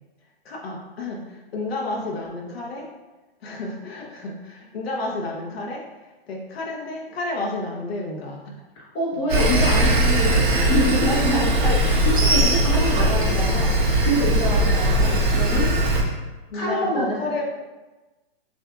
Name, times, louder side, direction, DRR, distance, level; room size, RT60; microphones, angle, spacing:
voice 1, 0.4-2.8 3.4-5.8 6.3-8.4 9.1-9.2 16.5-17.5, left 2 dB, 75° left, -2 dB, 1.0 m, -31 dB
voice 2, 8.7-13.7 14.0-15.6 16.5-17.3, equal, 30° left, -6 dB, 1.1 m, -26 dB
Sawing, 9.3-16.0, right 1 dB, 55° right, 0.9 m, -19 dB
6.0 x 2.7 x 2.4 m, 1.2 s
hypercardioid pair, 155°, 30 cm